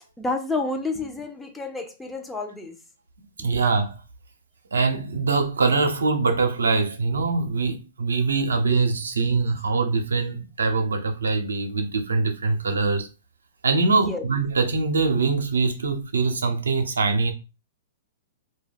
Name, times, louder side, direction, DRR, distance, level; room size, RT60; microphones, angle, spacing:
voice 1, 0.2-2.8 3.4-3.5 13.9-14.2, left 3 dB, 5° left, 0.5 m, -30 dB
voice 2, 3.4-4.0 4.7-13.1 13.6-17.3, right 4 dB, 90° right, 0.6 m, -23 dB
2.2 x 2.2 x 3.3 m
hypercardioid pair, 120°, 0 cm